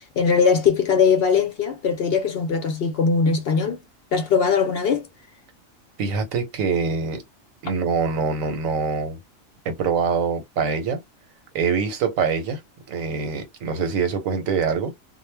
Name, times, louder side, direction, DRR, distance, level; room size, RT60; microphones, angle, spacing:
voice 1, 0.2-3.8 4.1-5.0, left 5 dB, 60° left, 0.7 m, -20 dB
voice 2, 6.0-7.2 7.6-9.2 9.6-11.0 11.5-12.6 12.9-14.9, right 5 dB, 90° right, 1.2 m, -24 dB
2.4 x 2.2 x 3.2 m
omnidirectional pair, 1.3 m